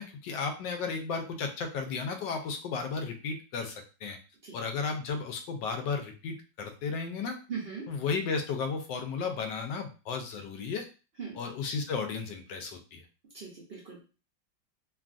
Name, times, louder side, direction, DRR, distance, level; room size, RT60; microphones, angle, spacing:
voice 1, 0.0-3.7 4.0-4.2 4.5-7.3 7.9-10.8 11.3-13.0, left 5 dB, 80° left, 5 dB, 1.2 m, -34 dB
voice 2, 7.5-7.9 11.2-11.4 13.3-14.0, right 6 dB, 55° right, -4 dB, 0.7 m, -39 dB
3.2 x 2.3 x 2.5 m, 0.33 s
omnidirectional pair, 2.0 m